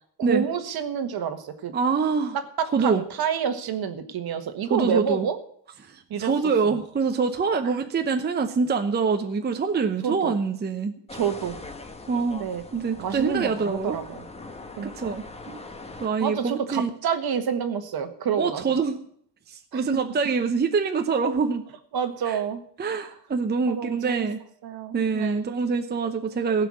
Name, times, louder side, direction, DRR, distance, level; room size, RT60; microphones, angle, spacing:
voice 1, 0.2-1.7 2.3-5.4 6.1-6.3 6.6-6.8 10.0-10.3 11.1-11.6 12.4-12.6 13.0-14.2 14.8-15.2 16.2-18.6 19.7-19.8 21.9-22.6 23.7-24.3 24.6-25.5, right 7 dB, 55° right, 8 dB, 1.5 m, -28 dB
voice 2, 1.7-2.4 2.7-3.0 4.7-5.2 5.9-10.9 12.1-14.0 14.8-15.6 16.0-16.9 18.4-19.0 19.5-21.6 22.3-22.4 22.8-24.4 24.9-26.7, right 5 dB, 20° right, 6 dB, 0.8 m, -25 dB
sound 1, 11.1-16.1, left 3 dB, 15° left, 1.2 m, -41 dB
15.5 x 5.8 x 8.6 m, 0.65 s
cardioid pair, 125°, 46 cm